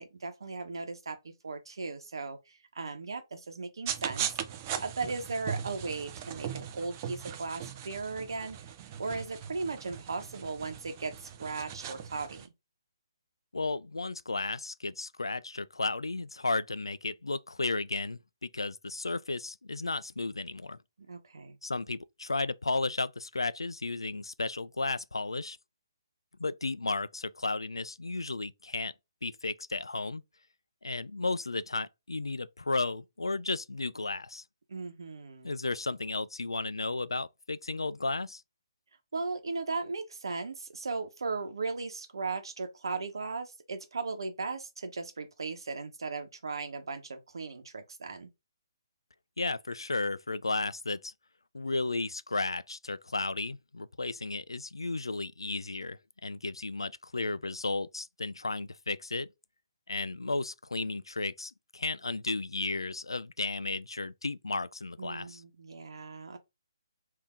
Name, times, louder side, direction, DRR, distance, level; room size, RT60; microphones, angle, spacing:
voice 1, 0.0-4.4 4.8-8.6 9.0-12.5 21.1-21.6 34.7-35.6 39.1-48.3 65.0-66.4, right 4 dB, 70° right, 1.0 m, -37 dB
sound 1, 3.9-12.5, right 9 dB, 30° right, 0.5 m, -39 dB
voice 2, 13.5-20.8 21.6-25.6 26.4-28.9 29.2-30.2 30.8-34.4 35.4-38.4 49.4-51.1 51.5-59.3 59.9-65.4, left 3 dB, 85° left, 0.3 m, -34 dB
3.5 x 2.7 x 3.6 m
figure-of-eight pair, 140°, 2 cm